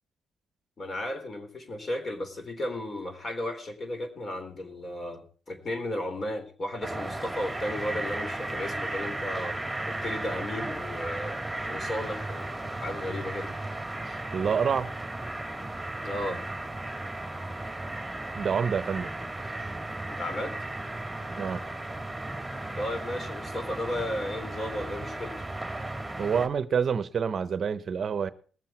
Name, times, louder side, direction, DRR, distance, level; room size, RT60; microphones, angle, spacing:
voice 1, 0.8-9.6 9.9-11.4 11.7-13.5 14.0-14.2 16.0-16.4 20.1-20.6 22.8-25.3, left 1 dB, 35° left, 3.8 m, -34 dB
sound 1, 6.8-26.5, right 2 dB, 5° right, 2.5 m, -35 dB
voice 2, 14.3-14.9 18.3-19.1 21.4-21.6 26.2-28.3, right 6 dB, 50° right, 0.8 m, -27 dB
20.0 x 7.6 x 4.4 m
cardioid pair, 90°, 0 cm